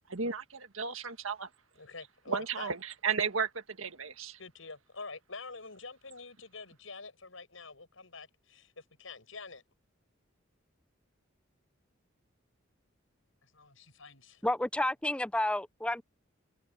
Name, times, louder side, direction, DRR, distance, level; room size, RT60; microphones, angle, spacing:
voice 1, 0.1-1.5 2.3-4.4, right 6 dB, 80° right, 1.8 m, -34 dB
voice 2, 1.8-2.7 4.4-9.6 13.4-14.4, left 4 dB, 75° left, 7.1 m, -47 dB
voice 3, 14.4-16.0, left 1 dB, 5° left, 0.5 m, -30 dB
head